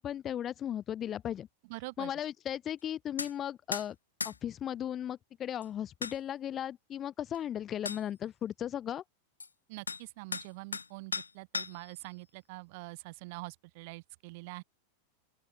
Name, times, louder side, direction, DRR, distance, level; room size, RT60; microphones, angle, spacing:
voice 1, 0.0-1.5 2.0-4.0 4.2-9.0, left 10 dB, 25° left, 4.0 m, -36 dB
voice 2, 1.7-2.1 9.7-14.6, right 26 dB, 50° right, 7.9 m, -45 dB
sound 1, 3.2-3.3 3.7-3.9 4.2-4.4 5.6-5.7 6.0-6.2 7.3-7.4 7.9-8.0 9.4-9.5 9.9-10.0 10.3-10.9 11.1-11.9, left 4 dB, 75° left, 0.9 m, -36 dB
open air
figure-of-eight pair, 90°, 0 cm